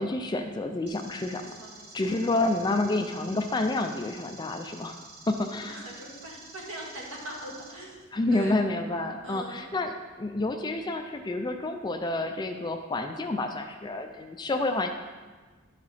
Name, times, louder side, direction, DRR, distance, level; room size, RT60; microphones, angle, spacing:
voice 1, 0.0-1.4 1.9-5.8 8.1-9.9 10.2-14.9, left 2 dB, 20° left, 6 dB, 0.4 m, -29 dB
sound 1, 0.9-7.7, right 3 dB, 50° right, 1.1 m, -49 dB
voice 2, 1.3-2.1 5.7-8.1 8.3-8.6 9.2-9.6 14.5-14.9, right 1 dB, 65° right, -3 dB, 1.9 m, -42 dB
11.0 x 4.8 x 4.1 m, 1.4 s
head